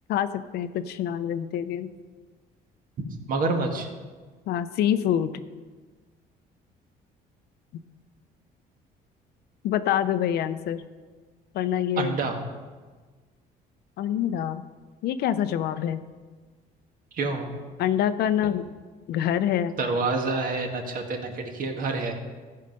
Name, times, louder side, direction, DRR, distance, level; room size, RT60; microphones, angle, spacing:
voice 1, 0.5-1.9 4.5-5.4 9.6-10.8 11.5-12.1 14.0-14.6 15.0-16.0 17.8-18.6 19.1-19.7, left 10 dB, 70° left, 12 dB, 0.6 m, -25 dB
voice 2, 3.3-3.9 12.0-12.4 17.1-17.5 18.4-18.5 19.8-22.2, right 3 dB, 55° right, 3 dB, 1.6 m, -27 dB
14.5 x 5.5 x 5.3 m, 1.4 s
cardioid pair, 110°, 17 cm